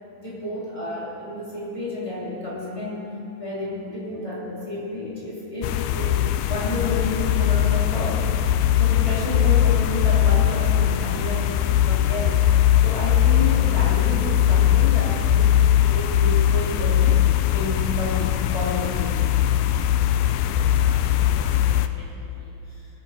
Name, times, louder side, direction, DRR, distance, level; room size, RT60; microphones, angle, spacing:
voice 1, 0.1-8.2 8.7-12.4 12.8-17.2 17.5-19.1, left 2 dB, 10° left, -7 dB, 2.8 m, -31 dB
sound 1, 5.6-21.9, left 11 dB, 85° left, 2.4 m, -20 dB
voice 2, 20.4-23.0, equal, 30° left, -7 dB, 2.3 m, -48 dB
20.0 x 11.0 x 4.3 m, 2.8 s
omnidirectional pair, 4.2 m